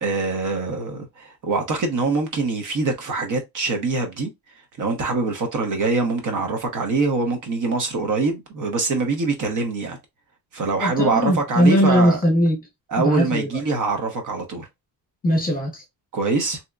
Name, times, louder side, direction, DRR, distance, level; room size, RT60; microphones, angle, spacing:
voice 1, 0.0-4.3 4.8-10.0 10.5-12.2 12.9-14.7 16.1-16.6, right 3 dB, 50° right, 0.9 m, -24 dB
voice 2, 10.8-12.6 13.0-13.5 15.2-15.8, equal, 20° left, 1.1 m, -19 dB
3.3 x 2.9 x 2.4 m
cardioid pair, 175°, 40 cm